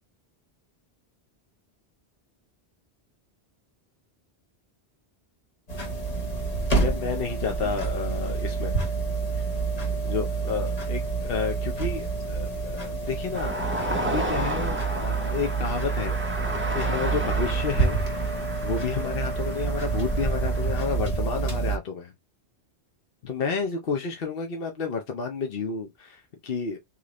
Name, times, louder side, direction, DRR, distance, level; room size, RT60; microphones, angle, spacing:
sound 1, 5.7-21.8, right 4 dB, 35° left, 1.2 m, -28 dB
voice 1, 6.8-8.8 9.4-9.5 10.0-18.0 18.6-22.1 23.2-26.8, left 5 dB, 60° left, 0.9 m, -31 dB
sound 2, 13.3-21.0, right 1 dB, 15° right, 0.6 m, -33 dB
3.9 x 3.0 x 3.0 m
omnidirectional pair, 1.1 m